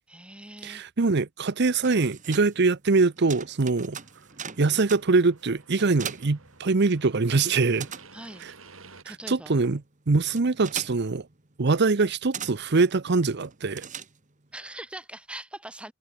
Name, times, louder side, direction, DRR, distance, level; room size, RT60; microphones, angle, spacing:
voice 1, 0.1-0.8 8.1-8.5 9.0-9.5 14.5-15.9, right 1 dB, 5° right, 3.1 m, -41 dB
voice 2, 0.6-4.0 4.6-7.9 9.3-9.8 10.1-11.2 11.6-13.9, right 3 dB, 55° right, 0.8 m, -23 dB
sound 1, 1.6-7.2 7.5-14.5, right 7 dB, 40° right, 1.9 m, -42 dB
sound 2, 3.9-9.0, right 4 dB, 80° right, 7.6 m, -53 dB
head